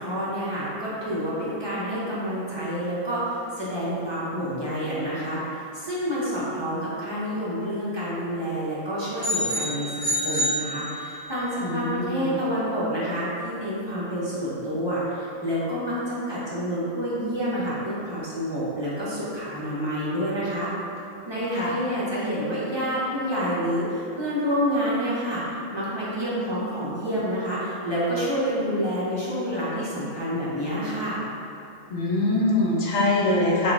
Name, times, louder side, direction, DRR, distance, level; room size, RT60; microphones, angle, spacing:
voice 1, 0.0-20.7 21.3-31.3, equal, 30° right, -9 dB, 0.5 m, -28 dB
sound 1, 9.2-11.4, equal, 35° left, 1.8 m, -27 dB
voice 2, 11.6-12.3 21.5-21.7 31.9-33.7, left 2 dB, 75° left, -3 dB, 1.1 m, -23 dB
3.9 x 2.4 x 3.5 m, 2.6 s
omnidirectional pair, 1.4 m